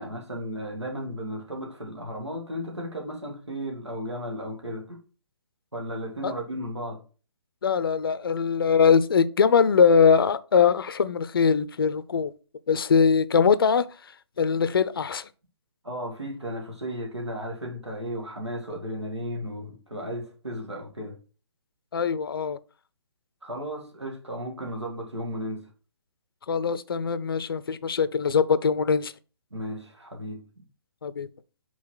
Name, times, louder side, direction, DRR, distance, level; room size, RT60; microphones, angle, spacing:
voice 1, 0.0-5.0 5.7-7.0 15.8-21.2 23.4-25.7 29.5-30.7, equal, 80° right, 2.3 m, -34 dB
voice 2, 7.6-12.3 12.7-13.9 14.4-15.3 21.9-22.6 26.5-29.1 31.0-31.3, left 6 dB, 55° left, 0.5 m, -22 dB
5.7 x 4.2 x 4.5 m
figure-of-eight pair, 135°, 14 cm